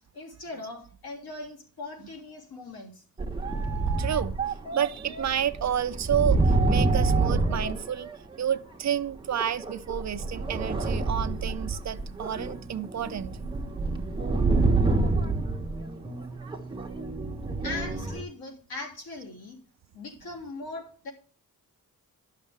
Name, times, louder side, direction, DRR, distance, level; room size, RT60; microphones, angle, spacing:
voice 1, 0.1-3.0 17.6-19.6 19.9-21.1, left 2 dB, 85° left, 3.2 m, -40 dB
sound 1, 3.2-8.5 9.3-18.2, right 3 dB, 15° right, 1.3 m, -28 dB
voice 2, 4.0-4.3 4.7-8.1 8.4-13.4 17.2-17.3, right 9 dB, 50° right, 0.5 m, -30 dB
12.0 x 6.7 x 3.5 m
wide cardioid pair, 175°, 36 cm